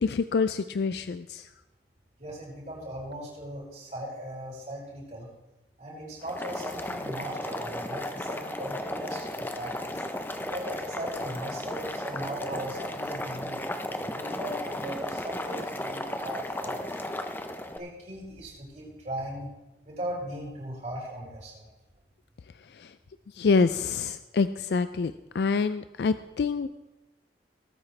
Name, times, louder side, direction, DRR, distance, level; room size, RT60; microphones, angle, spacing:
voice 1, 0.0-1.5 22.8-22.9 23.4-26.7, left 4 dB, 70° left, 12 dB, 0.4 m, -26 dB
voice 2, 2.2-5.3 5.8-10.0 10.5-13.6 14.1-17.1 17.7-19.5 19.8-21.7, right 1 dB, 40° right, -5 dB, 5.0 m, -38 dB
Boiling, 6.2-17.8, left 1 dB, 10° left, 0.6 m, -35 dB
19.5 x 8.9 x 3.3 m, 1.0 s
head